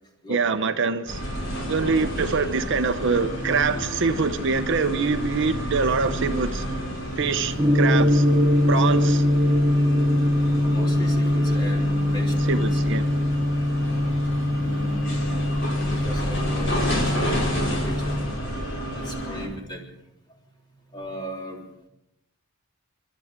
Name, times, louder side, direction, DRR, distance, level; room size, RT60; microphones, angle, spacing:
voice 1, 0.3-1.2 1.7-6.7 7.2-8.3 8.7-9.3 12.5-13.1, right 4 dB, 60° right, 0.8 m, -24 dB
sound 1, 1.1-19.5, equal, 60° left, 4.9 m, -30 dB
Gong, 7.6-18.2, left 1 dB, 20° right, 3.4 m, -22 dB
voice 2, 10.6-12.8 14.6-18.5 19.0-19.9 20.9-21.6, equal, 20° left, 3.7 m, -37 dB
30.0 x 12.5 x 3.7 m
head